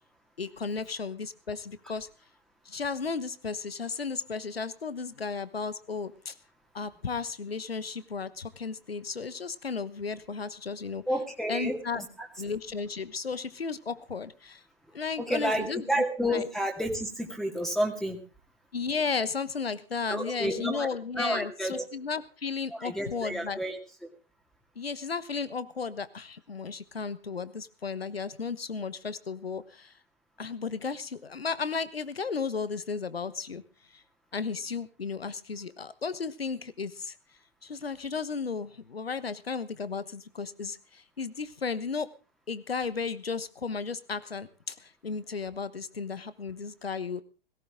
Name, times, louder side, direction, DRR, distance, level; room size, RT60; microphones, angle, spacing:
voice 1, 0.4-2.1 2.6-6.3 6.7-11.0 11.5-12.0 12.4-14.6 14.9-15.8 16.3-16.4 18.7-23.6 24.8-29.9 30.4-33.6 33.9-34.0 34.3-37.1 37.6-42.1 42.5-47.2, left 5 dB, 85° left, 16 dB, 1.2 m, -34 dB
voice 2, 11.1-12.3 15.2-18.2 20.1-20.9 21.2-21.9 22.7-23.8, equal, ahead, 2 dB, 2.3 m, -30 dB
18.0 x 17.0 x 3.7 m, 0.35 s
figure-of-eight pair, 110°, 29 cm